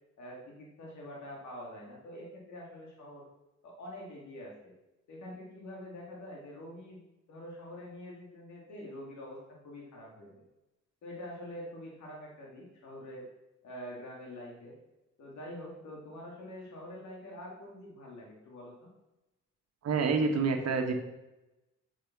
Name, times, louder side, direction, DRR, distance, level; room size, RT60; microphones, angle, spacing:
voice 1, 0.2-3.3 3.6-4.7 5.1-9.4 9.6-10.4 11.0-13.3 13.6-14.8 15.2-18.9, left 1 dB, 70° left, -2 dB, 2.8 m, -45 dB
voice 2, 19.8-20.9, right 4 dB, 55° right, 3 dB, 1.5 m, -27 dB
7.4 x 6.9 x 6.0 m, 0.97 s
cardioid pair, 90°, 30 cm